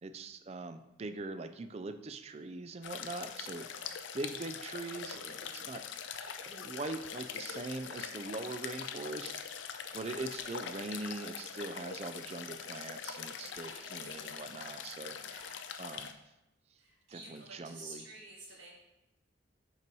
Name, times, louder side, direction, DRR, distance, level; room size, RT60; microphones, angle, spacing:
voice 1, 0.0-3.6 4.1-5.8 6.2-15.2 15.8-16.1 17.1-18.0, right 3 dB, 30° right, 10 dB, 0.3 m, -42 dB
sound 1, 2.8-16.1, left 7 dB, 75° left, 0.5 m, -43 dB
voice 2, 3.0-4.0 4.8-5.7 13.4-14.3 15.2-15.6 16.8-18.7, right 2 dB, 85° right, -5 dB, 2.1 m, -52 dB
5.5 x 4.6 x 5.3 m, 0.95 s
head